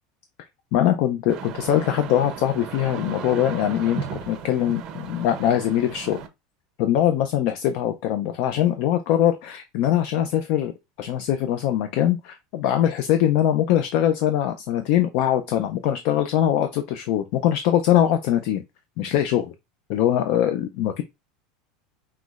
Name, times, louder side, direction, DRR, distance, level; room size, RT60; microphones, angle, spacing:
voice 1, 0.7-6.2 6.8-10.7 11.0-18.6 19.0-19.5 19.9-21.0, left 11 dB, 45° left, 0.5 m, -22 dB
sound 1, 1.3-6.3, right 7 dB, 30° right, 0.6 m, -36 dB
5.7 x 3.1 x 2.4 m
supercardioid pair, 180°, 2 cm